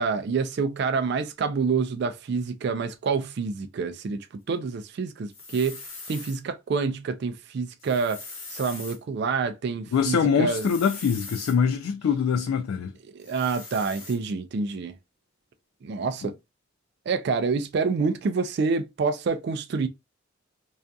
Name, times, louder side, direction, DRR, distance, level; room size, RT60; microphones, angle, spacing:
voice 1, 0.0-5.8 6.1-8.2 8.5-10.7 13.1-14.9 15.8-16.3 17.1-19.9, right 5 dB, 55° right, 0.3 m, -27 dB
sound 1, 5.3-6.4 7.8-9.0 10.5-11.6 13.2-14.2, left 3 dB, 70° left, 1.2 m, -41 dB
voice 2, 9.9-12.9 16.2-16.3, left 6 dB, 90° left, 0.3 m, -24 dB
2.6 x 2.3 x 2.2 m
head